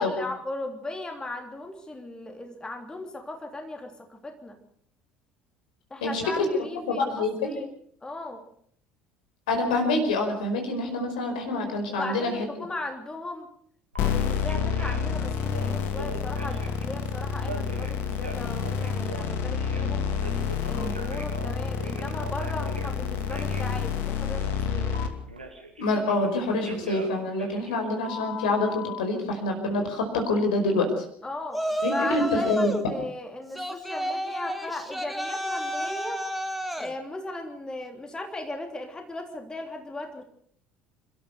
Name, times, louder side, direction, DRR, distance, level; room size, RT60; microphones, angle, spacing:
voice 1, 0.0-4.6 5.9-7.7 8.0-8.4 11.9-13.5 14.0-20.0 20.7-24.9 31.2-31.6 31.9-36.2 36.8-40.2, left 2 dB, 15° left, 4 dB, 3.2 m, -37 dB
voice 2, 6.0-6.5 6.9-7.3 9.5-12.4 20.7-20.9 25.8-31.0 31.8-32.8, left 2 dB, 65° left, 4 dB, 5.0 m, -26 dB
Telephone, 13.9-14.1 14.5-15.1 15.5-16.8 17.4-19.9 20.2-22.9 23.3-23.7 24.9-26.3 26.7-29.0, equal, 85° right, 2.5 m, -40 dB
sound 1, 14.0-25.1, left 7 dB, 50° left, 2.6 m, -29 dB
Yell, 31.5-32.9 33.5-36.9, equal, ahead, 2.2 m, -30 dB
29.0 x 13.5 x 6.9 m, 0.65 s
figure-of-eight pair, 60°, 5 cm